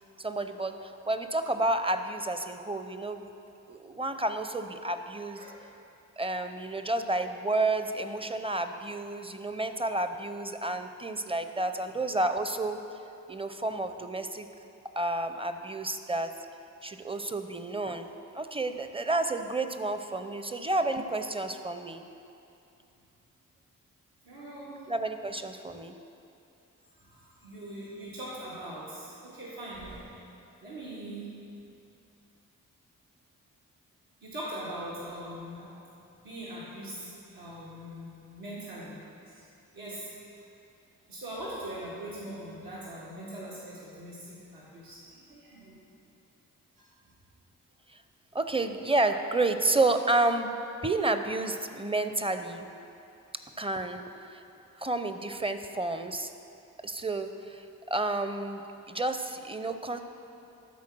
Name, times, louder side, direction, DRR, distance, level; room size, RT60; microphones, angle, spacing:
voice 1, 0.2-3.3 3.7-5.4 6.2-12.8 13.3-14.5 15.0-16.3 16.8-22.0 24.9-25.9 48.3-50.5 50.8-52.7 53.6-54.4 54.8-56.3 56.8-60.0, right 2 dB, 15° right, 8 dB, 0.6 m, -30 dB
sound 1, 20.8-21.4, right 1 dB, 45° right, 1.3 m, -50 dB
voice 2, 24.2-24.8 26.9-30.2 30.6-31.3 34.2-35.8 36.2-39.5 39.7-40.1 41.1-45.8 46.8-46.9, right 1 dB, 75° right, -8 dB, 1.9 m, -41 dB
12.5 x 4.3 x 6.2 m, 2.7 s
supercardioid pair, 40°, 35 cm